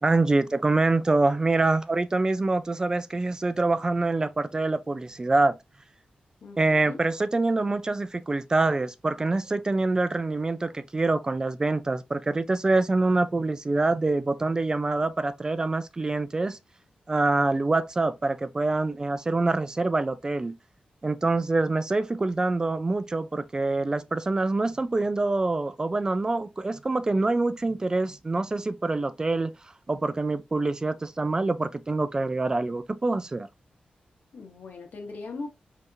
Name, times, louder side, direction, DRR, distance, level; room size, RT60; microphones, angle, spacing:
voice 1, 0.0-5.6 6.6-16.6 17.1-20.5 21.0-29.5 29.9-33.5, right 3 dB, 25° right, 0.3 m, -25 dB
voice 2, 6.4-7.0 34.3-35.5, left 3 dB, 70° left, 1.1 m, -39 dB
3.4 x 2.8 x 2.6 m
wide cardioid pair, 110°, 3 cm